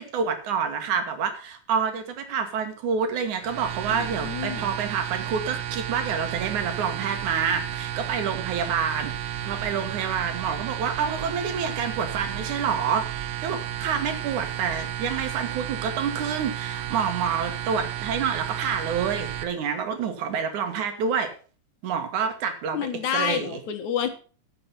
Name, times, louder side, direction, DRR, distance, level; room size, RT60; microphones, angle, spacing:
voice 1, 0.0-9.1 9.4-21.3 21.8-23.6, right 6 dB, 85° right, 7 dB, 3.1 m, -28 dB
sound 1, 3.4-19.4, right 11 dB, 65° right, 1.9 m, -32 dB
voice 2, 3.9-4.7 22.7-24.1, left 9 dB, 80° left, 8 dB, 2.8 m, -29 dB
14.0 x 7.0 x 5.5 m, 0.37 s
omnidirectional pair, 3.4 m